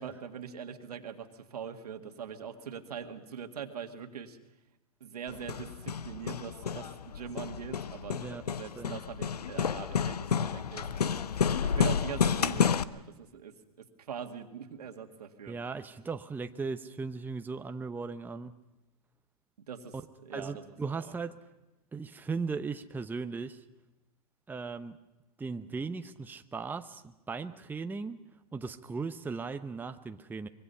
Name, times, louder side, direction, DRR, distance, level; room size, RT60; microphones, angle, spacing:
voice 1, 0.0-4.4 5.0-11.2 11.6-15.6 19.7-19.9 20.2-20.6 21.0-21.1, right 7 dB, 80° right, 6 dB, 2.0 m, -42 dB
Hammer, 5.3-12.8, left 7 dB, 90° left, 0.7 m, -30 dB
voice 2, 15.5-18.5 20.3-21.4 21.9-23.6 24.5-25.0 25.4-28.2 28.5-30.5, right 4 dB, 10° right, 8 dB, 0.8 m, -37 dB
24.5 x 22.5 x 5.6 m, 0.98 s
hypercardioid pair, 110°, 20 cm